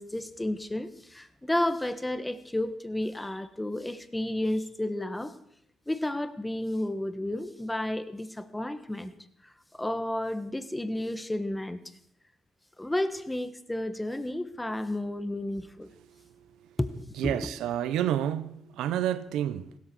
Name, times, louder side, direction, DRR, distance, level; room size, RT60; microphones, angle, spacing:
voice 1, 0.0-5.3 5.9-9.1 9.4-11.9 12.8-15.9 16.8-17.5, left 1 dB, 10° left, 1.5 m, -32 dB
voice 2, 17.2-19.8, right 11 dB, 90° right, 0.9 m, -29 dB
16.5 x 13.0 x 6.3 m
cardioid pair, 90°, 0 cm